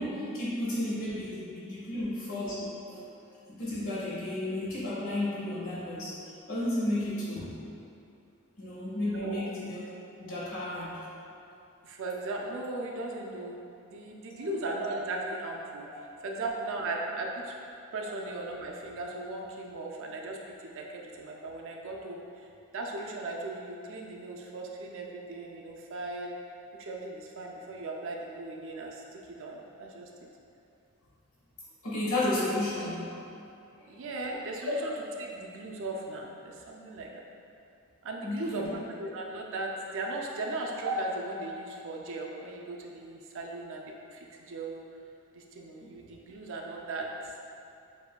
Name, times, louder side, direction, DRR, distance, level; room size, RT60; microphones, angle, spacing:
voice 1, 0.0-3.0 3.6-6.1 6.5-7.5 8.6-9.8 10.2-11.1 14.3-14.5 31.8-33.2 33.8-33.9 38.2-38.7 45.8-45.9, left 1 dB, 65° left, -9 dB, 1.5 m, -33 dB
voice 2, 9.0-9.4 11.8-13.6 13.8-17.5 17.9-22.5 22.7-26.4 26.8-30.1 33.9-34.9 35.2-37.2 38.0-44.8 45.3-47.3, right 2 dB, 60° right, 0 dB, 0.5 m, -37 dB
6.9 x 2.7 x 2.2 m, 2.6 s
head